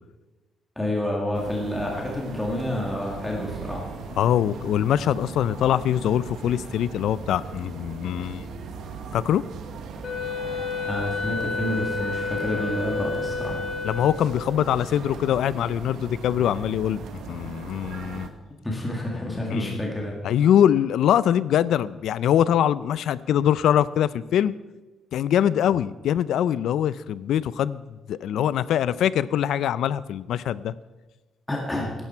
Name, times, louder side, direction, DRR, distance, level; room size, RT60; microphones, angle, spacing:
voice 1, 0.8-3.9 10.9-13.6 18.6-20.1 31.5-31.9, left 1 dB, 5° left, -2 dB, 2.0 m, -29 dB
sound 1, 1.3-18.3, right 5 dB, 70° right, 1.4 m, -38 dB
voice 2, 4.2-8.5 9.1-9.4 13.8-17.0 17.3-18.3 19.5-19.8 20.2-24.5 25.1-30.7, left 10 dB, 70° left, 18 dB, 0.4 m, -23 dB
Wind instrument woodwind instrument, 10.0-14.6, left 4 dB, 45° left, 1.7 m, -30 dB
16.5 x 12.0 x 4.5 m, 1.2 s
cardioid pair, 170°, 0 cm